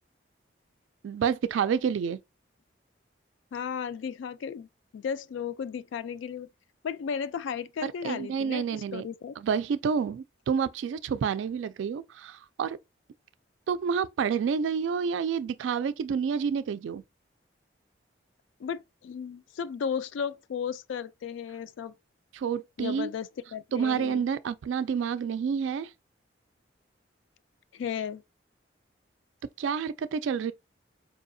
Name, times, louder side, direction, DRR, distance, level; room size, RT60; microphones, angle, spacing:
voice 1, 1.0-2.2 7.8-9.1 9.4-12.8 13.7-17.0 22.3-23.1 23.7-25.9 29.6-30.5, right 6 dB, 85° right, 0.3 m, -29 dB
voice 2, 3.5-4.7 4.9-6.5 6.8-9.3 18.6-21.9 22.8-24.2 27.7-28.2, left 7 dB, 85° left, 0.3 m, -34 dB
4.7 x 2.7 x 2.6 m
head